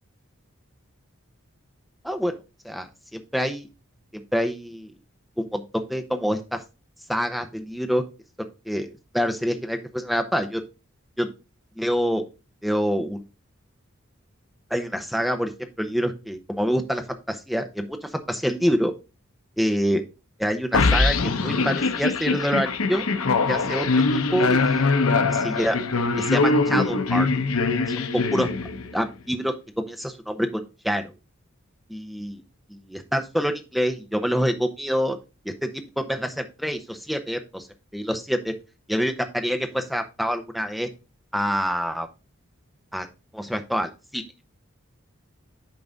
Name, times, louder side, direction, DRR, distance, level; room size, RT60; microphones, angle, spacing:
voice 1, 2.6-3.7 4.1-4.9 5.4-5.6 5.9-6.6 7.1-8.0 8.7-10.6 11.2-11.3 11.8-12.2 12.6-13.2 14.7-15.5 15.8-18.9 19.6-20.0 20.4-23.0 23.5-25.0 25.3-25.8 26.2-27.3 27.9-28.5 28.9-31.1 31.9-32.4 32.7-35.2 35.4-35.7 36.0-37.7 37.9-38.5 38.9-40.9 41.3-42.1 42.9-43.1 43.3-44.2, equal, ahead, 6 dB, 0.7 m, -26 dB
sound 1, 20.7-29.0, left 3 dB, 90° left, 0.8 m, -22 dB
10.5 x 3.9 x 3.9 m, 0.29 s
head